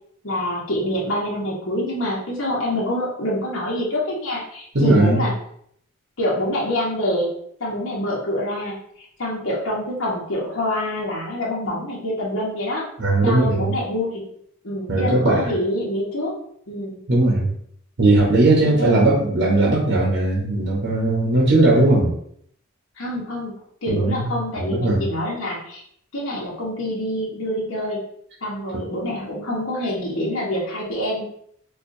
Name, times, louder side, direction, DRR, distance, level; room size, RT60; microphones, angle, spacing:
voice 1, 0.2-5.3 6.2-7.3 7.6-12.9 13.2-14.2 14.6-16.3 16.7-17.0 18.8-19.1 23.0-23.5 23.8-25.8 26.1-28.0 28.4-31.2, left 1 dB, 65° left, -6 dB, 1.0 m, -26 dB
voice 2, 4.7-5.2 13.0-13.7 14.9-15.5 17.1-17.5 18.0-22.1 23.9-24.3 24.6-25.1, right 2 dB, 60° right, -4 dB, 0.8 m, -18 dB
4.4 x 2.4 x 2.6 m, 0.67 s
head